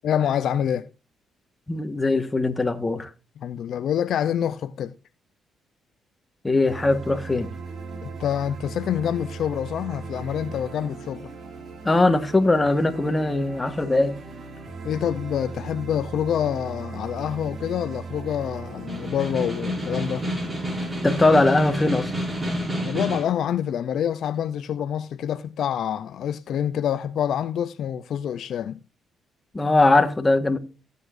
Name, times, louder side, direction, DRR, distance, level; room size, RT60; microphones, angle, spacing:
voice 1, 0.0-0.9 3.4-5.0 8.0-11.3 14.8-20.3 22.8-28.8, left 9 dB, 70° left, 0.5 m, -27 dB
voice 2, 1.7-3.1 6.4-7.5 11.8-14.2 21.0-22.1 29.5-30.6, left 2 dB, 20° left, 1.5 m, -20 dB
sound 1, 6.7-22.7, right 4 dB, 50° right, 3.0 m, -38 dB
Snare drum, 18.7-23.4, equal, 25° right, 6.0 m, -29 dB
15.5 x 8.2 x 2.6 m
cardioid pair, 90°, 0 cm